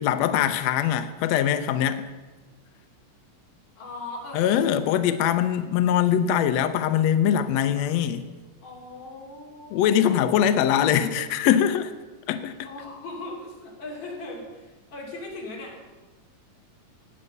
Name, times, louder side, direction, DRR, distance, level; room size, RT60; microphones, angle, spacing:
voice 1, 0.0-2.0 4.3-8.2 9.7-11.9 12.3-12.5, left 9 dB, 85° left, 10 dB, 1.5 m, -22 dB
voice 2, 3.8-4.7 8.6-11.1 12.6-15.8, left 2 dB, 55° left, -2 dB, 4.3 m, -39 dB
16.5 x 9.7 x 6.7 m, 1.3 s
omnidirectional pair, 3.9 m